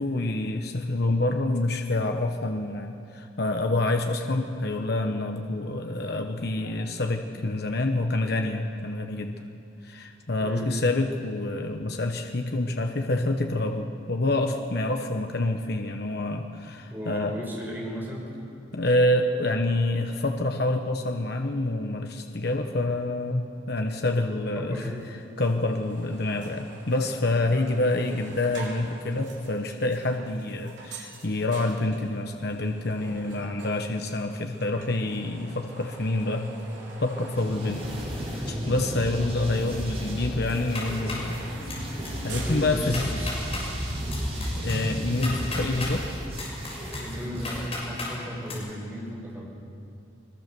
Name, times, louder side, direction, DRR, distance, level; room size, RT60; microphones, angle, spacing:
voice 1, 0.0-9.4 9.8-17.4 18.7-24.9 25.4-36.5 37.0-37.8 38.2-41.7 42.2-43.1 44.5-46.1, left 2 dB, 55° left, 4 dB, 1.0 m, -27 dB
voice 2, 16.9-18.3 24.5-25.1 27.7-27.9 33.2-33.5 42.4-43.3 46.9-49.5, equal, 10° right, -2 dB, 4.9 m, -35 dB
sound 1, 25.0-25.1 25.4-38.9 39.2-43.9, right 3 dB, 70° right, 4.3 m, -47 dB
sound 2, 37.3-47.7, equal, 30° right, 5.0 m, -33 dB
sound 3, 40.5-41.3 41.7-42.1 42.4-42.5 42.8-43.6 44.1-45.9 46.3-48.1 48.5-48.6, left 3 dB, 30° left, 6.5 m, -35 dB
22.0 x 22.0 x 6.9 m, 2.6 s
head